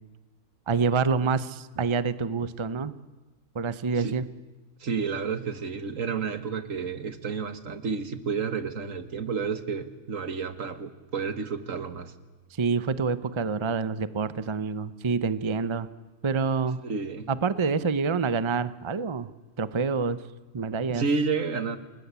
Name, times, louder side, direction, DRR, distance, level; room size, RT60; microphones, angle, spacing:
voice 1, 0.7-2.9 3.5-4.3 12.5-15.9 16.2-16.8 17.3-19.3 19.6-20.2 20.5-21.1, right 5 dB, 25° right, 15 dB, 0.7 m, -27 dB
voice 2, 4.8-12.1 16.8-17.3 20.9-21.8, right 5 dB, 75° right, 11 dB, 1.9 m, -30 dB
28.5 x 20.0 x 8.3 m, 1.3 s
omnidirectional pair, 1.4 m